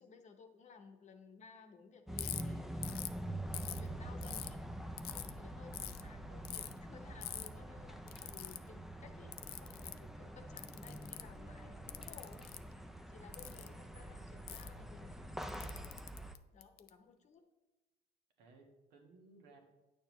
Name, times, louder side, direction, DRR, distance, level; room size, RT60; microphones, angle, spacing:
voice 1, 0.0-3.0 3.5-4.6 5.1-12.5 13.1-16.1 16.5-17.5, left 5 dB, 45° left, 7 dB, 0.9 m, -58 dB
sound 1, 2.1-16.3, right 1 dB, ahead, 0.4 m, -46 dB
Ratchet pawl, 2.2-2.4 2.8-3.1 3.5-4.5 5.0-5.3 5.7-6.0 6.4-6.7 7.2-7.5 8.1-8.6 9.3-10.0 10.6-11.3 11.9-12.6 13.3-13.7 14.5-14.7 15.4-16.9, left 13 dB, 65° left, 0.4 m, -44 dB
voice 2, 5.5-6.0 8.1-8.2 8.6-8.7 13.4-13.8 18.4-19.6, right 2 dB, 90° right, 1 dB, 1.4 m, -62 dB
8.8 x 6.8 x 3.1 m, 1.1 s
cardioid pair, 110°, 17 cm